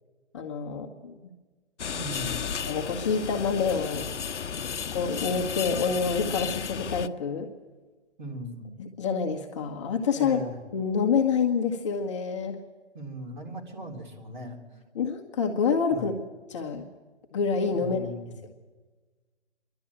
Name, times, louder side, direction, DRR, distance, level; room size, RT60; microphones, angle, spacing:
voice 1, 0.3-1.1 2.7-4.1 4.9-7.5 8.8-10.4 10.7-12.6 14.9-16.1 16.5-16.8 17.3-18.1, left 5 dB, 25° left, 3 dB, 1.0 m, -27 dB
sound 1, 1.8-7.1, left 7 dB, 90° left, 0.7 m, -33 dB
voice 2, 1.9-2.5 8.2-8.7 10.1-10.6 12.9-14.6 15.9-16.1 17.7-18.3, equal, 40° right, 1 dB, 3.8 m, -38 dB
27.0 x 11.5 x 8.7 m, 1.3 s
hypercardioid pair, 155°, 34 cm